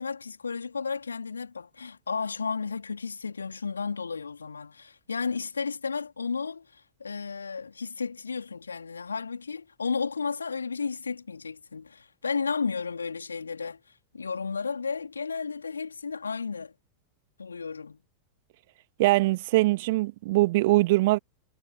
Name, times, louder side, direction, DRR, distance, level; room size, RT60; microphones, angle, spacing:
voice 1, 0.0-13.8 14.1-16.7 17.4-18.0, left 5 dB, 75° left, 3.9 m, -33 dB
voice 2, 19.0-21.2, right 19 dB, 50° right, 2.0 m, -22 dB
figure-of-eight pair, 90°, 0 cm